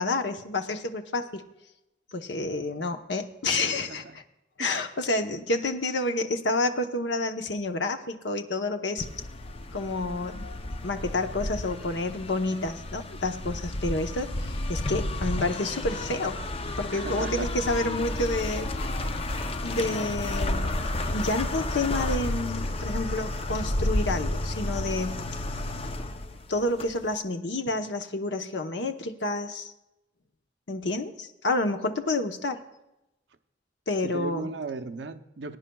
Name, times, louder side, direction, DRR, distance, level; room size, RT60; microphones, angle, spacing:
voice 1, 0.0-1.4 2.1-4.2 4.6-9.1 9.7-10.5 10.8-16.4 16.8-18.7 19.6-20.8 21.1-25.2 26.5-29.7 30.7-32.6 33.9-34.5, left 2 dB, 75° left, 6 dB, 0.9 m, -29 dB
voice 2, 3.7-4.2 4.6-4.8 16.9-17.8 34.0-35.6, right 3 dB, 75° right, 10 dB, 0.6 m, -37 dB
sound 1, 9.0-27.1, left 1 dB, 30° left, 0.6 m, -31 dB
21.0 x 9.8 x 2.3 m, 0.91 s
head